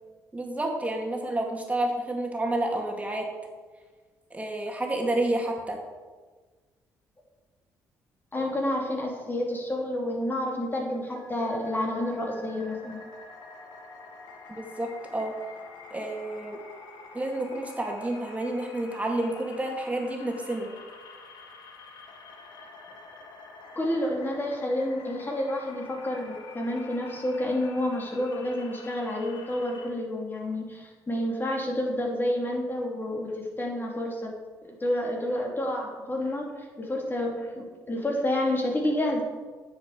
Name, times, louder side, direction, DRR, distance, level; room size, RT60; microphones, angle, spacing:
voice 1, 0.3-3.3 4.3-5.8 14.5-15.4 15.9-16.6 17.1-20.7, right 1 dB, 20° right, 1 dB, 2.4 m, -30 dB
voice 2, 8.3-13.0 23.7-34.3 34.6-36.5 36.8-39.2, left 1 dB, 25° left, -1 dB, 3.2 m, -29 dB
sound 1, 11.2-29.9, left 4 dB, 70° left, 1.5 m, -47 dB
9.5 x 7.5 x 5.0 m, 1.4 s
supercardioid pair, 60°, 8 cm